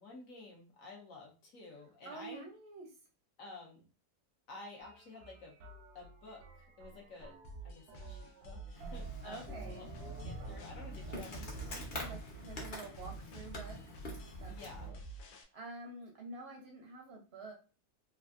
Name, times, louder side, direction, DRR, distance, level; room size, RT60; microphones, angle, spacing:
voice 1, 0.0-2.5 3.4-3.9 4.5-5.6 5.9-7.4 7.6-9.9 10.2-12.2 14.5-14.9, left 3 dB, 65° left, -1 dB, 1.1 m, -52 dB
voice 2, 2.0-2.9 9.2-9.8 11.9-14.1 14.4-15.0 15.5-17.5, right 3 dB, 65° right, 2 dB, 0.6 m, -48 dB
sound 1, 4.8-11.2, right 3 dB, 85° right, 1.2 m, -51 dB
sound 2, 7.4-15.4, right 3 dB, 90° left, 1.1 m, -48 dB
Insect, 8.7-14.9, left 1 dB, 45° left, 0.7 m, -46 dB
3.3 x 2.4 x 2.4 m, 0.35 s
omnidirectional pair, 1.6 m